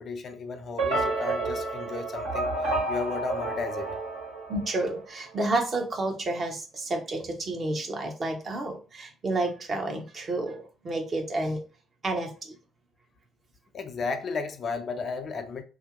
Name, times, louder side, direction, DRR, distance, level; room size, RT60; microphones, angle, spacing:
voice 1, 0.0-4.0 13.7-15.6, left 4 dB, 45° left, 0.4 m, -34 dB
sound 1, 0.8-5.1, right 2 dB, 75° right, 1.5 m, -30 dB
voice 2, 4.5-11.6 12.0-12.6, right 2 dB, 35° right, 0.9 m, -30 dB
2.6 x 2.1 x 3.9 m
figure-of-eight pair, 50°, 0 cm